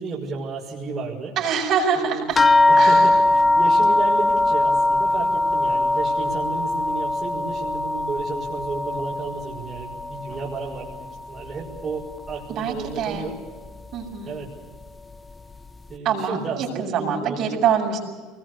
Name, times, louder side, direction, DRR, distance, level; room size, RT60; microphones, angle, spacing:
voice 1, 0.0-1.3 2.0-2.3 2.7-3.1 3.6-13.3 14.3-14.5 15.9-17.6, right 4 dB, 30° right, -4 dB, 5.9 m, -32 dB
voice 2, 1.4-2.4 2.8-3.2 12.5-13.3 13.9-14.3 16.0-18.0, right 7 dB, 55° right, 0 dB, 7.6 m, -25 dB
sound 1, 2.4-11.2 11.5-12.4 13.1-13.2 13.6-13.8, left 2 dB, 20° left, 1.0 m, -21 dB
24.5 x 21.5 x 8.4 m, 1.4 s
supercardioid pair, 105°, 0 cm